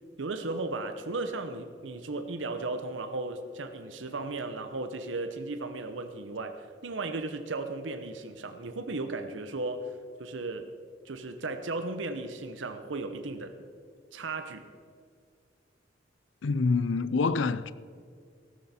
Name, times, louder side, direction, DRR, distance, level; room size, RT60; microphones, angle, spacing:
voice 1, 0.2-9.9 10.2-10.7 11.0-13.5 14.1-14.6, right 3 dB, 85° right, 0.9 m, -35 dB
voice 2, 16.4-17.7, left 4 dB, 80° left, 0.5 m, -26 dB
15.5 x 13.0 x 4.3 m
head